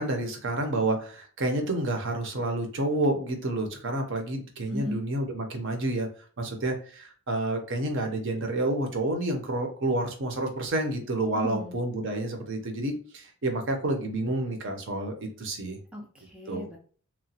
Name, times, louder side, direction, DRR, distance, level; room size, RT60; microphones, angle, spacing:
voice 1, 0.0-6.1 6.4-15.8 16.5-16.7, right 2 dB, 55° right, 4 dB, 0.6 m, -29 dB
voice 2, 4.7-5.0 11.3-11.8 15.9-16.8, equal, 5° right, 0 dB, 0.3 m, -35 dB
2.9 x 2.1 x 2.7 m, 0.43 s
head